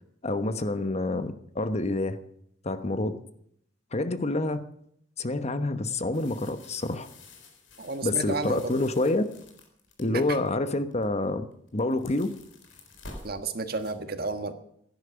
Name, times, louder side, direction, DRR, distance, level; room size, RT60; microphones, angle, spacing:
voice 1, 0.2-2.2 2.6-3.2 3.9-4.6 5.2-7.1 8.0-9.2 10.0-11.5 11.7-12.3, left 2 dB, 35° left, 11 dB, 1.0 m, -27 dB
sound 1, 6.1-10.5 10.9-11.3 11.5-13.9, left 2 dB, 80° left, 3.8 m, -49 dB
voice 2, 7.8-8.7 10.1-10.4 13.2-14.5, right 3 dB, 55° right, 8 dB, 1.5 m, -32 dB
16.0 x 10.5 x 7.0 m, 0.70 s
head